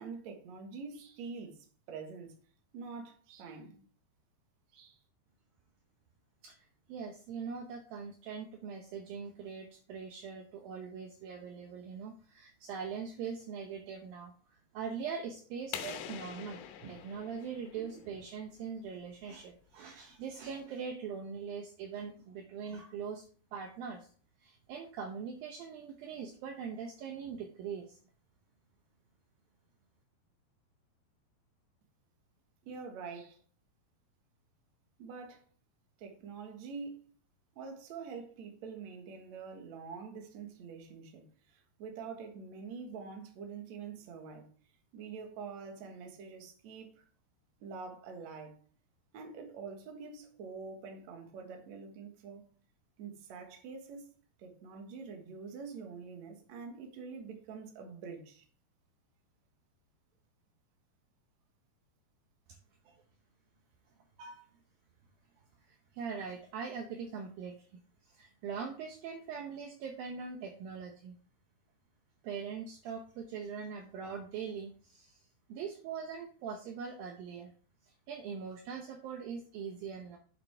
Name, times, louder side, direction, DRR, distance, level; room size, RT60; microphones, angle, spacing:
voice 1, 0.0-2.3 2.7-3.9 4.7-5.0 32.6-33.4 35.0-35.5 36.0-37.0 37.6-44.5 44.9-47.0 47.6-48.6 49.1-52.5 53.0-54.1 54.4-58.4, right 5 dB, 55° right, 2.3 m, -45 dB
voice 2, 6.4-23.3 23.5-24.1 24.4-28.0 62.9-63.0 64.2-64.5 65.7-71.2 72.2-77.5 77.8-80.2, right 6 dB, 75° right, 2.4 m, -42 dB
sound 1, 15.7-18.4, left 9 dB, 85° left, 3.0 m, -44 dB
8.2 x 7.3 x 3.4 m
omnidirectional pair, 4.7 m